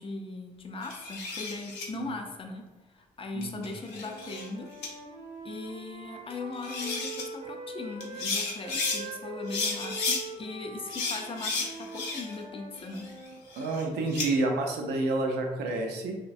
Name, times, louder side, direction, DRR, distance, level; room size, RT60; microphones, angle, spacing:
voice 1, 0.0-2.6 2.9-4.7 5.4-13.1, left 3 dB, 35° left, 4 dB, 0.5 m, -39 dB
sound 1, 0.8-1.9 3.4-4.5 4.8-4.9 6.3-6.4 6.6-7.2 8.0-9.0 9.5-10.2 10.9-12.4 12.8-14.3, left 4 dB, 90° left, 0.6 m, -33 dB
voice 2, 3.3-3.6 13.6-16.2, right 2 dB, 85° right, 2 dB, 0.5 m, -29 dB
Wind instrument woodwind instrument, 3.9-8.3 8.6-13.4, right 4 dB, 50° right, 0.7 m, -43 dB
3.1 x 2.1 x 2.5 m, 1.2 s
supercardioid pair, 60°, 17 cm